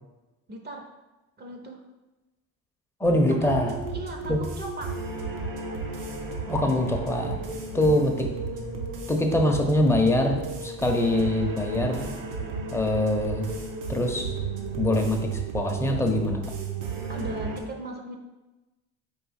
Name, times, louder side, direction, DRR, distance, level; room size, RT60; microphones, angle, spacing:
voice 1, 0.5-0.9 1.4-1.8 3.3-3.5 3.9-4.9 9.5-9.6 17.1-18.2, right 1 dB, 30° right, 2 dB, 0.7 m, -38 dB
voice 2, 3.0-3.8 4.3-4.4 6.5-8.3 9.1-12.1 12.7-13.5 13.9-14.4 14.8-16.4, left 1 dB, 10° left, 2 dB, 0.7 m, -24 dB
sound 1, 3.1-15.4, left 2 dB, 80° left, 0.7 m, -45 dB
sound 2, 3.4-17.6, right 4 dB, 80° right, 0.8 m, -33 dB
4.8 x 2.6 x 4.1 m, 1.1 s
supercardioid pair, 85°, 33 cm